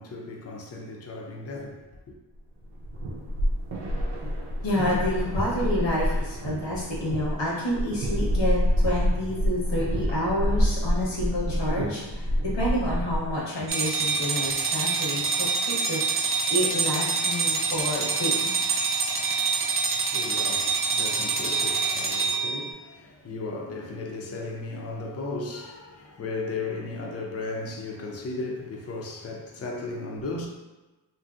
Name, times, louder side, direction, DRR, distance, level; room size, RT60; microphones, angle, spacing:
voice 1, 0.0-1.9 19.2-30.5, left 3 dB, 35° left, 0.5 m, -36 dB
sound 1, 2.6-13.4, equal, 80° right, 0.6 m, -27 dB
voice 2, 4.6-18.7, left 1 dB, 85° left, 1.0 m, -29 dB
sound 2, 13.7-22.7, right 5 dB, 30° right, 0.5 m, -26 dB
2.8 x 2.6 x 2.4 m
cardioid pair, 50°, 42 cm